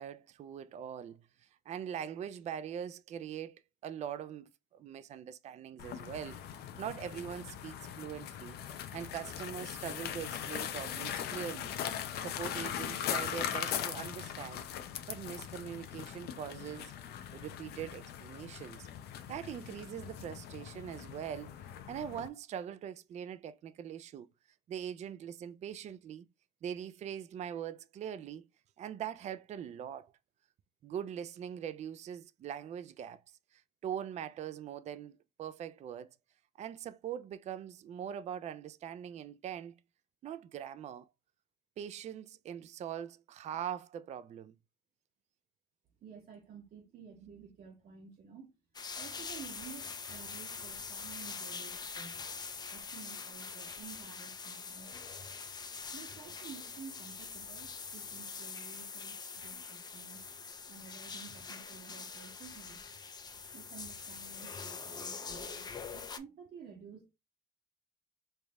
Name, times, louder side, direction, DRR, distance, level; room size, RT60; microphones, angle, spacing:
voice 1, 0.0-6.4 6.8-8.6 8.9-11.8 12.2-14.7 15.1-16.9 17.3-18.9 19.3-21.5 21.9-24.3 24.7-26.3 26.6-28.5 28.8-30.1 30.8-33.2 33.5-36.1 36.6-39.7 40.2-41.1 41.8-44.5, right 9 dB, 40° right, 0.4 m, -42 dB
sound 1, 5.8-22.3, left 9 dB, 70° left, 0.6 m, -40 dB
voice 2, 46.0-48.5 48.9-52.2 52.7-54.9 55.9-60.2 60.7-62.8 63.5-67.1, right 6 dB, 60° right, 1.0 m, -52 dB
sound 2, 48.7-66.2, left 5 dB, 25° left, 0.4 m, -44 dB
3.2 x 2.3 x 4.0 m
cardioid pair, 110°, 17 cm